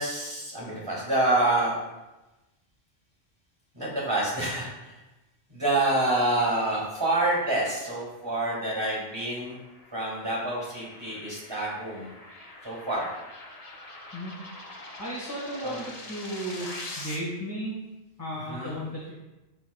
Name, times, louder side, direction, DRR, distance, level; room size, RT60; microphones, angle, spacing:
voice 1, 0.0-1.7 3.7-4.9 5.5-9.6 9.9-12.1 12.6-13.1 15.6-15.8 18.5-18.7, right 2 dB, 20° right, -5 dB, 2.6 m, -27 dB
sound 1, 8.3-17.2, left 2 dB, 35° left, 0.9 m, -44 dB
voice 2, 15.0-16.7 17.0-17.7 18.2-19.1, equal, 20° left, -7 dB, 1.4 m, -34 dB
12.5 x 4.3 x 2.3 m, 1.0 s
omnidirectional pair, 1.2 m